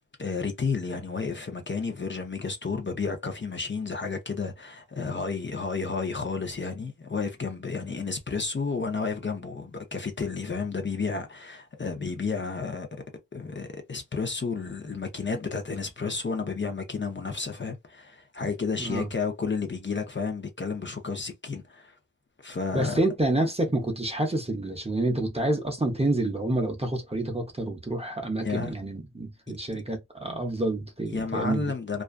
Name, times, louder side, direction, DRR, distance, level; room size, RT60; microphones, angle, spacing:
voice 1, 0.2-12.9 13.3-22.0 22.4-23.0 28.4-28.7 31.1-32.0, left 4 dB, 35° left, 0.6 m, -31 dB
voice 2, 18.8-19.1 22.7-31.7, right 1 dB, 20° right, 0.6 m, -28 dB
2.4 x 2.3 x 2.2 m
wide cardioid pair, 85°, 33 cm